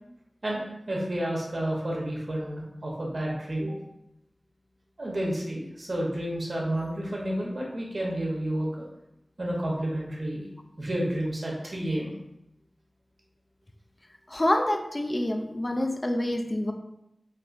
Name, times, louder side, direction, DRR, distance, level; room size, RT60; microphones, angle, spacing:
voice 1, 0.4-3.8 5.0-8.7 9.4-10.4 10.8-12.1, right 1 dB, 60° right, -3 dB, 0.9 m, -30 dB
voice 2, 14.3-16.7, left 1 dB, 35° left, 5 dB, 0.4 m, -27 dB
3.4 x 2.7 x 2.5 m, 0.84 s
cardioid pair, 45°, 0 cm